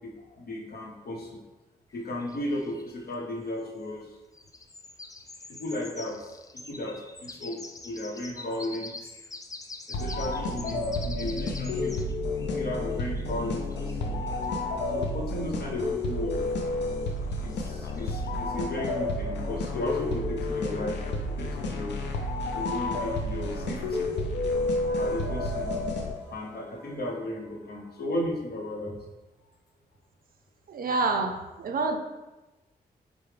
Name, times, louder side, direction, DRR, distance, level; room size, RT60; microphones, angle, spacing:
voice 1, 0.0-1.4 1.9-4.2 5.5-7.6 7.8-9.1 9.9-11.9 12.5-14.1 14.9-16.4 17.4-22.0 22.5-24.1 24.7-25.8 26.2-29.0, left 1 dB, 60° left, 0 dB, 0.8 m, -35 dB
sound 1, 1.9-3.3 4.3-15.1 17.1-18.3, left 3 dB, 20° left, 0.4 m, -45 dB
sound 2, 9.9-26.4, left 2 dB, 90° left, 0.4 m, -30 dB
voice 2, 30.7-32.0, right 3 dB, 55° right, 5 dB, 0.4 m, -27 dB
4.7 x 2.0 x 3.2 m, 1.1 s
supercardioid pair, 45°, 18 cm